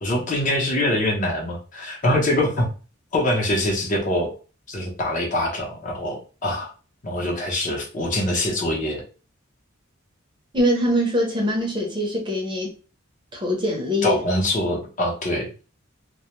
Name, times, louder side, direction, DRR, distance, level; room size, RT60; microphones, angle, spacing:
voice 1, 0.0-2.7 3.1-4.3 4.7-6.7 7.0-9.0 14.0-15.5, left 1 dB, 40° left, 0.7 m, -24 dB
voice 2, 10.5-12.7 13.3-14.2, equal, 20° right, 0.6 m, -23 dB
2.2 x 2.1 x 2.9 m
head